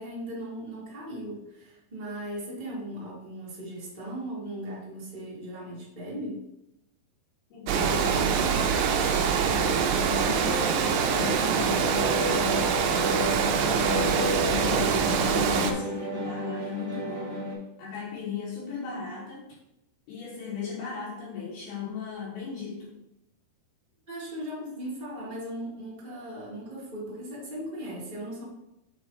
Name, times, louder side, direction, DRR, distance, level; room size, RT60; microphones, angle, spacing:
voice 1, 0.0-6.4 24.1-28.4, right 1 dB, 35° right, -6 dB, 0.6 m, -38 dB
voice 2, 7.5-12.7 13.1-17.4 17.8-19.5 20.1-22.9, left 6 dB, 70° left, -6 dB, 3.7 m, -37 dB
Water, 7.7-15.7, right 6 dB, 85° right, 2.0 m, -25 dB
sound 1, 10.1-17.5, equal, 35° left, 1.9 m, -32 dB
7.2 x 4.4 x 4.0 m, 0.87 s
omnidirectional pair, 4.9 m